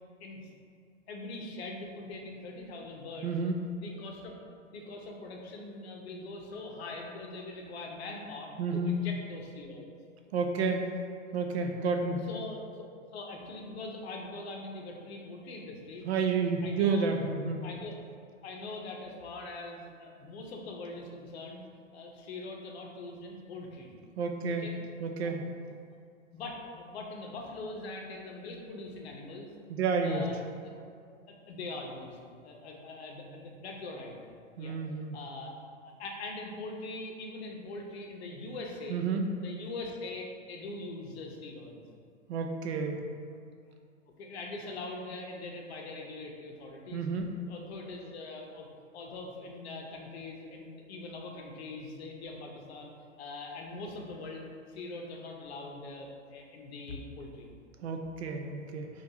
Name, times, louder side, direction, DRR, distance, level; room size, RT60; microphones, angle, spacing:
voice 1, 1.1-3.3 3.8-4.3 4.7-9.9 12.1-12.6 13.1-16.1 16.6-17.1 17.6-17.9 18.4-21.6 21.9-23.9 24.4-24.8 25.2-25.3 26.3-29.5 30.0-30.7 31.3-34.1 34.6-34.8 35.1-35.5 35.8-39.0 39.4-41.8 44.2-47.0 47.5-48.7 48.9-52.9 53.2-57.5, left 2 dB, 55° left, 0 dB, 0.7 m, -42 dB
voice 2, 3.2-3.6 8.6-9.0 10.3-10.9 11.3-12.2 16.1-17.6 24.2-24.7 25.0-25.4 29.7-30.3 34.6-35.2 38.9-39.3 42.3-43.0 46.9-47.3 57.8-58.9, right 4 dB, 55° right, 4 dB, 0.5 m, -30 dB
5.1 x 2.5 x 2.9 m, 2.3 s
figure-of-eight pair, 110°, 39 cm